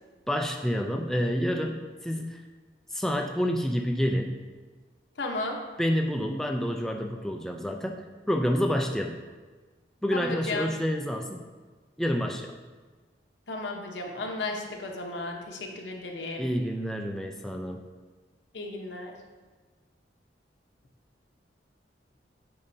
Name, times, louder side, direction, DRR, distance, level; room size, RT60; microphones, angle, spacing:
voice 1, 0.3-2.4 2.9-4.4 5.8-9.2 10.0-11.4 12.0-12.5 16.4-17.8, equal, ahead, 2 dB, 0.3 m, -28 dB
voice 2, 5.2-5.6 10.1-10.7 13.5-16.5 18.5-19.1, left 2 dB, 80° left, 2 dB, 1.0 m, -34 dB
8.6 x 5.4 x 2.7 m, 1.4 s
head